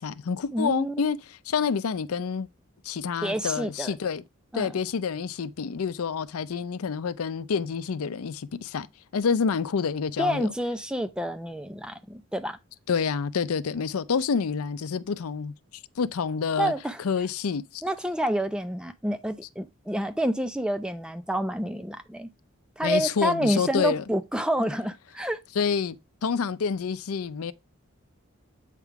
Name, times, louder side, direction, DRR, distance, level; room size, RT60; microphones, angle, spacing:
voice 1, 0.0-2.5 2.8-4.2 4.5-8.9 9.1-10.5 12.9-15.5 16.0-16.7 17.0-17.8 22.8-24.0 25.6-26.0 26.2-27.5, left 6 dB, 90° left, 0.5 m, -28 dB
voice 2, 0.5-1.1 3.2-3.9 4.5-4.7 10.2-12.6 16.6-17.0 17.8-22.3 22.8-25.4, equal, 5° right, 0.5 m, -28 dB
8.2 x 3.7 x 4.6 m
head